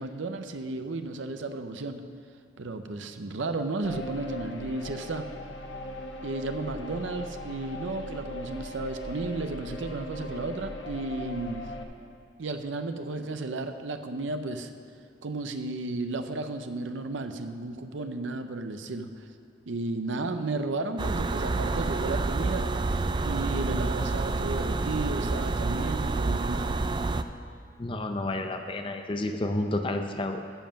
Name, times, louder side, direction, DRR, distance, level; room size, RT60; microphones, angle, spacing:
voice 1, 0.0-2.0 2.6-5.3 6.2-11.7 12.4-14.7 15.2-19.3 19.7-22.7 23.0-26.7, right 2 dB, 80° right, 8 dB, 0.7 m, -33 dB
sound 1, 3.8-11.8, left 1 dB, 80° left, 1.0 m, -39 dB
sound 2, 21.0-27.2, right 3 dB, 25° right, 0.3 m, -28 dB
voice 2, 27.8-30.4, left 2 dB, 25° left, 6 dB, 0.6 m, -30 dB
12.5 x 7.5 x 5.7 m, 2.4 s
head